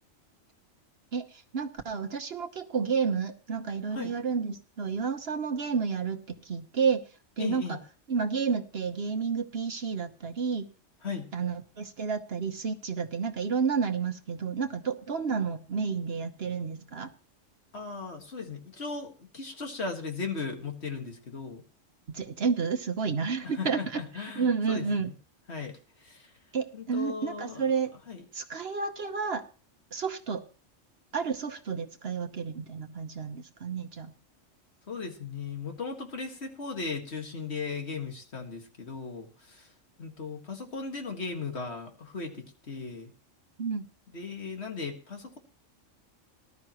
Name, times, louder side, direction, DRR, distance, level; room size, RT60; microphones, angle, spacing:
voice 1, 1.1-7.0 7.4-7.8 8.1-10.6 11.3-17.1 22.1-24.0 24.4-25.1 26.5-27.9 28.3-29.4 29.9-30.4 31.1-34.1 43.6-43.9, right 5 dB, 55° right, 7 dB, 1.2 m, -30 dB
voice 2, 7.4-7.8 11.0-11.3 17.7-21.6 23.4-25.1 25.5-26.3 26.7-27.7 28.1-28.2 34.9-39.7 40.0-43.1 44.1-45.4, left 4 dB, 55° left, 4 dB, 2.1 m, -37 dB
19.0 x 12.0 x 3.0 m, 0.36 s
omnidirectional pair, 1.3 m